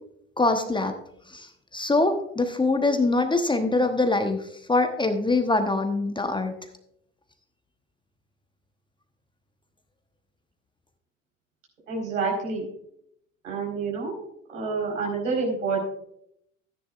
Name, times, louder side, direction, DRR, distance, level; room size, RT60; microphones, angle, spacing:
voice 1, 0.4-0.9 1.3-6.5, left 2 dB, 10° left, 7 dB, 1.0 m, -24 dB
voice 2, 11.9-12.6 13.4-14.2 14.5-15.8, right 4 dB, 75° right, -2 dB, 4.6 m, -28 dB
14.5 x 9.9 x 2.5 m, 0.73 s
figure-of-eight pair, 65°, 39 cm